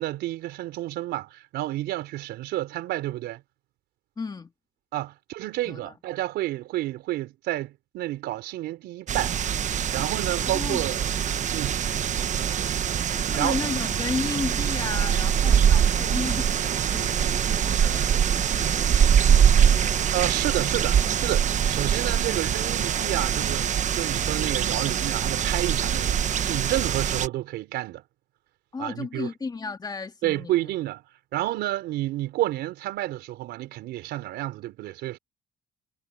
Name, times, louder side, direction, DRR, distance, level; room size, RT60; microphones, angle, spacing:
voice 1, 0.0-3.4 4.9-9.4 9.9-11.0 11.5-11.8 13.3-13.6 20.1-28.0 28.8-29.3 30.2-31.0 31.3-35.2, right 15 dB, 80° right, 4.4 m, -30 dB
voice 2, 4.2-4.5 5.6-5.9 10.4-10.9 13.1-19.5 28.7-30.6, left 4 dB, 25° left, 2.4 m, -34 dB
sound 1, 9.1-27.3, right 8 dB, 45° right, 1.1 m, -23 dB
cardioid pair, 110°, 17 cm